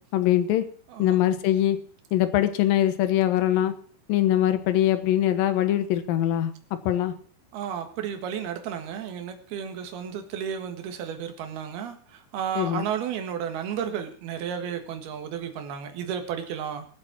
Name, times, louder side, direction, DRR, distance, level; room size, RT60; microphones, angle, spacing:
voice 1, 0.1-0.7 1.0-1.8 2.1-3.7 4.1-6.5 6.9-7.1 12.6-12.9, left 12 dB, 70° left, 11 dB, 2.3 m, -22 dB
voice 2, 7.5-16.9, right 8 dB, 65° right, 6 dB, 3.3 m, -33 dB
20.0 x 7.6 x 6.1 m, 0.43 s
omnidirectional pair, 5.4 m